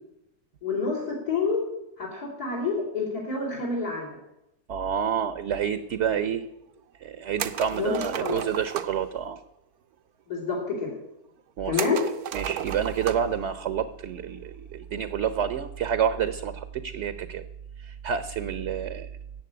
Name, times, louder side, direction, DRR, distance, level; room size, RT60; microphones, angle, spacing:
voice 1, 0.6-1.6 2.0-4.1 7.7-8.4 10.3-10.9 11.6-12.0, left 4 dB, 80° left, -4 dB, 4.1 m, -28 dB
voice 2, 4.7-6.5 7.0-9.4 11.6-11.8 12.3-17.4 17.8-19.1, right 8 dB, 60° right, 12 dB, 0.9 m, -28 dB
sound 1, 7.4-9.0 11.8-13.4 13.7-13.8 15.4-15.7, right 10 dB, 80° right, 1.2 m, -34 dB
15.0 x 7.3 x 9.7 m, 0.86 s
omnidirectional pair, 1.6 m